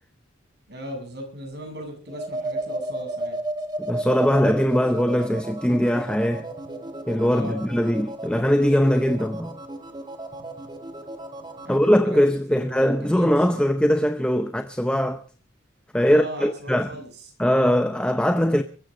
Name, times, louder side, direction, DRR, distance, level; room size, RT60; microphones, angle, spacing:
voice 1, 0.7-3.4 7.3-7.6 11.6-11.8 12.0-12.2 12.5-13.6 16.1-17.1, equal, 55° right, 7.7 m, -37 dB
sound 1, 2.1-11.9, right 2 dB, 20° right, 1.7 m, -34 dB
voice 2, 3.8-6.5 7.1-9.6 11.7-15.2 15.9-17.0 17.4-18.6, equal, 5° left, 0.7 m, -21 dB
23.0 x 14.5 x 3.8 m
head